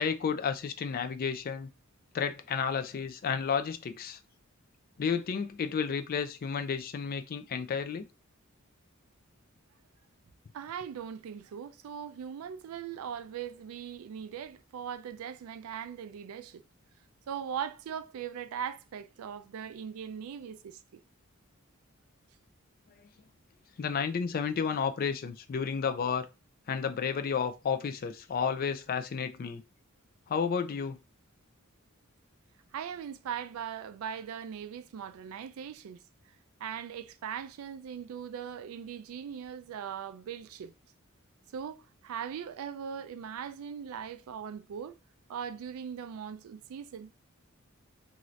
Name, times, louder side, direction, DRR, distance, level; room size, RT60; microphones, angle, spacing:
voice 1, 0.0-1.7 2.1-4.2 5.0-8.0 23.8-26.3 26.7-29.6 30.3-31.0, left 6 dB, 45° left, 0.3 m, -31 dB
voice 2, 10.5-16.6 17.3-21.0 32.7-36.0 36.6-40.7 41.5-45.0 45.3-47.1, right 8 dB, 80° right, 0.3 m, -40 dB
2.7 x 2.4 x 3.1 m
head